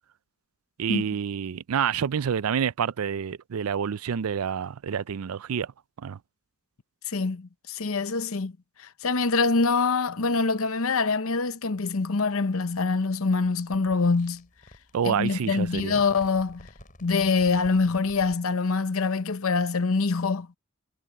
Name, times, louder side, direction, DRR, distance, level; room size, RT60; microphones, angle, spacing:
voice 1, 0.8-5.7 6.0-6.2 14.9-16.0, right 7 dB, 85° right, 0.4 m, -28 dB
voice 2, 7.1-8.5 8.8-14.4 15.0-16.6 17.0-20.5, left 4 dB, 70° left, 0.8 m, -25 dB
sound 1, 13.5-18.5, left 1 dB, 40° left, 6.8 m, -52 dB
head